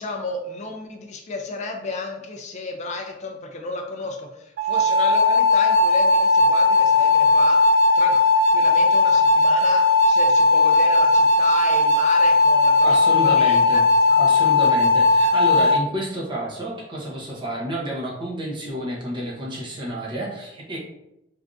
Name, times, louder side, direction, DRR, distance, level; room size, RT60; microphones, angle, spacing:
voice 1, 0.0-7.6 8.0-8.2 8.5-13.0 13.2-13.8 14.1-14.2, left 3 dB, 40° left, 3 dB, 0.4 m, -32 dB
sound 1, 4.6-15.8, left 3 dB, 75° right, 0.3 m, -17 dB
voice 2, 12.8-13.8 14.2-20.8, right 1 dB, 25° right, -4 dB, 0.7 m, -30 dB
3.3 x 2.4 x 2.5 m, 0.86 s
head